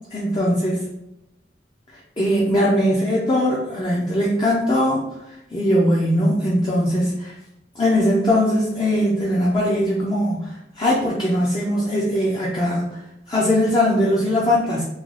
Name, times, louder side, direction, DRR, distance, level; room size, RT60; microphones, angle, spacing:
voice 1, 0.1-0.9 2.2-7.3 7.7-13.0 13.3-14.8, equal, 25° left, -6 dB, 0.6 m, -20 dB
3.8 x 2.3 x 3.2 m, 0.87 s
head